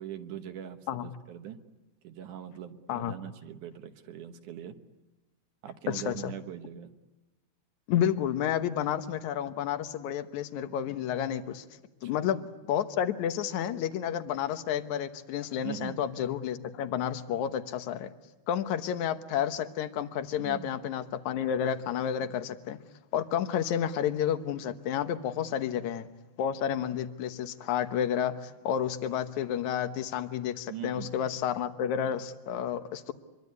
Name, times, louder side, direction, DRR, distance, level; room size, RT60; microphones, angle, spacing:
voice 1, 0.0-1.6 2.0-4.8 5.6-6.9 12.0-12.3 15.6-16.0 20.4-20.7 30.7-31.4, right 9 dB, 65° right, 8 dB, 2.3 m, -41 dB
voice 2, 5.9-6.3 7.9-11.7 12.0-18.1 18.5-22.8 23.1-26.1 26.4-33.1, left 9 dB, 65° left, 9 dB, 2.2 m, -31 dB
25.5 x 23.5 x 9.6 m, 1.1 s
omnidirectional pair, 4.3 m